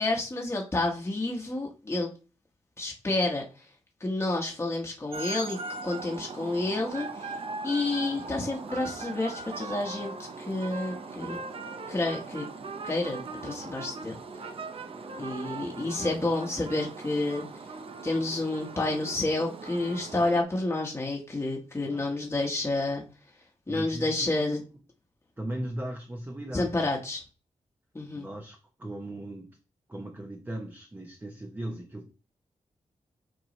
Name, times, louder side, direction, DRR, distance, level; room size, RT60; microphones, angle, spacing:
voice 1, 0.0-2.1 2.8-3.4 4.0-7.3 7.6-11.4 11.9-12.5 12.8-14.2 15.2-17.4 18.0-23.0 23.7-24.6 26.5-27.2 27.9-28.3, left 2 dB, 20° left, 1.1 m, -29 dB
sound 1, 5.1-20.4, right 4 dB, 50° right, 0.6 m, -40 dB
voice 2, 23.7-24.7 25.4-27.0 28.1-29.6 29.9-32.1, right 1 dB, 15° right, 0.8 m, -38 dB
7.7 x 4.6 x 3.1 m
wide cardioid pair, 130°, 12 cm